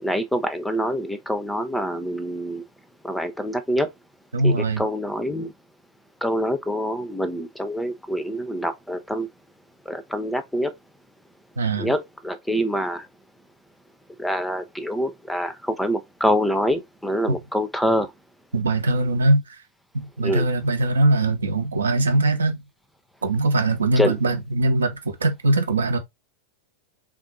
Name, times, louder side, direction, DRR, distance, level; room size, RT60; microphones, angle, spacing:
voice 1, 0.0-2.6 3.0-3.9 4.4-5.5 6.2-9.3 9.9-10.7 11.8-13.1 14.2-18.1 20.2-20.5 24.0-24.1, equal, 5° left, 0.6 m, -25 dB
voice 2, 4.3-4.8 11.6-11.9 18.5-19.4 19.9-22.6 23.2-26.0, right 2 dB, 70° right, 0.8 m, -21 dB
3.6 x 2.6 x 3.8 m
figure-of-eight pair, 90°, 0 cm